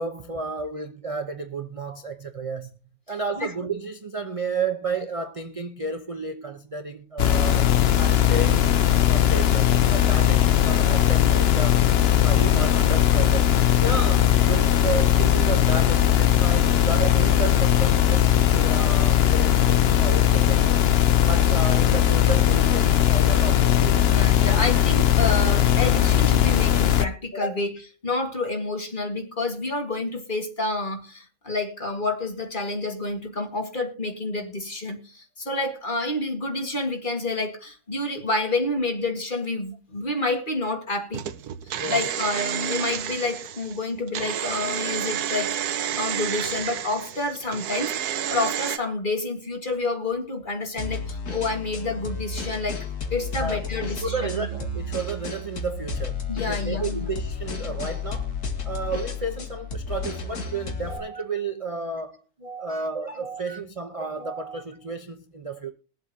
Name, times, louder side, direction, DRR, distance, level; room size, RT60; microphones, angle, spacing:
voice 1, 0.0-2.7 3.1-7.7 8.0-8.7 9.1-11.8 12.2-20.8 21.2-24.0 27.5-27.6 41.8-42.0 53.4-58.3 58.6-65.7, right 3 dB, 30° right, 0.7 m, -32 dB
sound 1, 7.2-27.0, left 11 dB, 55° left, 0.7 m, -19 dB
voice 2, 23.9-41.2 41.9-54.5 56.3-57.1 62.7-62.8 63.5-63.6, left 2 dB, 30° left, 2.0 m, -29 dB
sound 2, 41.1-48.8, right 10 dB, 75° right, 1.3 m, -30 dB
sound 3, 50.8-61.0, left 4 dB, 70° left, 2.3 m, -32 dB
22.0 x 7.9 x 2.8 m
omnidirectional pair, 1.7 m